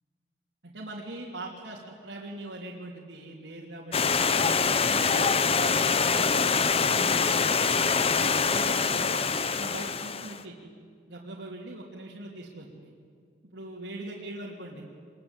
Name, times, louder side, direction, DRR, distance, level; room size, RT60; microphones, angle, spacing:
voice 1, 0.6-4.3 4.8-9.2 9.5-10.5 11.1-12.9 13.5-14.8, right 2 dB, 75° right, -4 dB, 3.3 m, -41 dB
Stream, 3.9-10.4, left 5 dB, 35° left, 0.9 m, -25 dB
25.5 x 22.5 x 9.0 m, 2.2 s
head